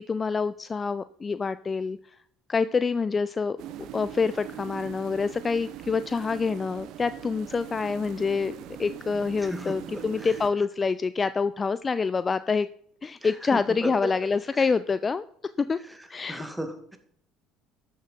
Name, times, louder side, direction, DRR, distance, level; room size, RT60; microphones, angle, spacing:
voice 1, 0.0-2.0 2.5-3.6 3.9-8.5 8.8-12.7 13.0-15.2 15.6-15.8 16.1-16.4, left 5 dB, 30° left, 15 dB, 0.4 m, -26 dB
sound 1, 3.6-10.5, right 11 dB, 60° right, 0.8 m, -41 dB
voice 2, 16.3-17.0, right 1 dB, 5° right, 6 dB, 2.1 m, -34 dB
13.0 x 7.3 x 4.5 m, 0.63 s
hypercardioid pair, 60°, 0 cm